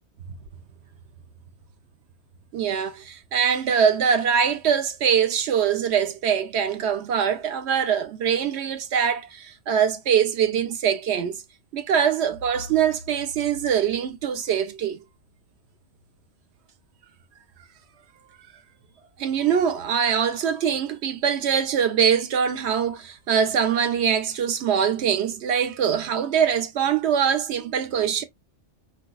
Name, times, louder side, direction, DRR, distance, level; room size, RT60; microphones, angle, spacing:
voice 1, 2.5-11.4 11.7-15.0 19.2-28.2, right 8 dB, 70° right, 0.8 m, -23 dB
3.8 x 2.7 x 2.2 m
omnidirectional pair, 1.3 m